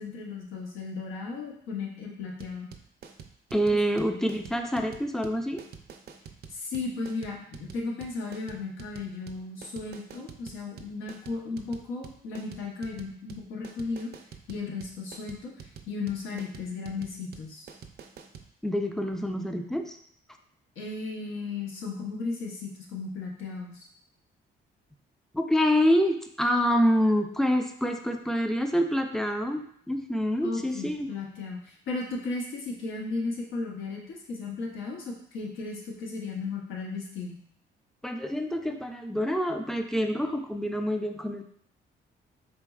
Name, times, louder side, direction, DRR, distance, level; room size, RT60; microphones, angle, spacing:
voice 1, 0.0-2.7 6.5-14.1 14.5-17.7 20.8-23.8 30.4-37.4, left 3 dB, 85° left, -1 dB, 0.9 m, -35 dB
sound 1, 2.4-18.5, right 7 dB, 55° right, 0.5 m, -47 dB
voice 2, 3.5-5.6 18.6-20.0 25.3-31.1 38.0-41.4, equal, ahead, 5 dB, 0.4 m, -26 dB
4.3 x 3.0 x 2.3 m, 0.64 s
cardioid pair, 90°, 20 cm